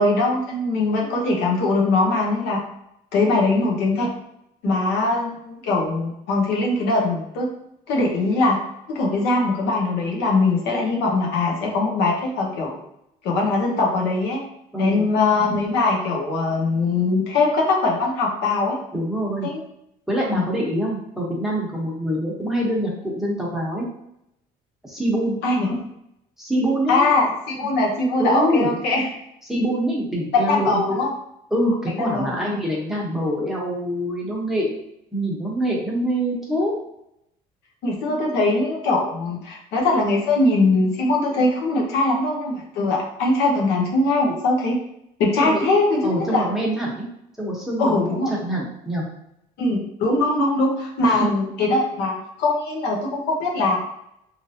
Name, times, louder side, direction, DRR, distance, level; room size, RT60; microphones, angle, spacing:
voice 1, 0.0-2.6 3.1-4.1 4.6-7.5 7.9-8.6 8.9-12.8 13.2-14.4 14.8-18.8 19.4-19.6 20.3-20.4 25.4-25.9 26.9-29.1 30.3-31.1 31.9-32.4 37.8-44.8 45.2-46.5 47.8-48.3 49.6-53.8, left 2 dB, 90° left, -1 dB, 0.8 m, -21 dB
voice 2, 14.7-15.1 18.9-19.5 20.1-23.9 24.8-25.4 26.4-27.1 27.6-27.7 28.2-28.7 29.5-30.8 31.5-34.8 35.1-36.7 45.4-45.7 46.0-47.1 47.4-48.0 48.3-49.1 51.0-51.3, equal, ahead, -5 dB, 1.0 m, -25 dB
3.1 x 2.6 x 2.7 m, 0.79 s
cardioid pair, 110°, 17 cm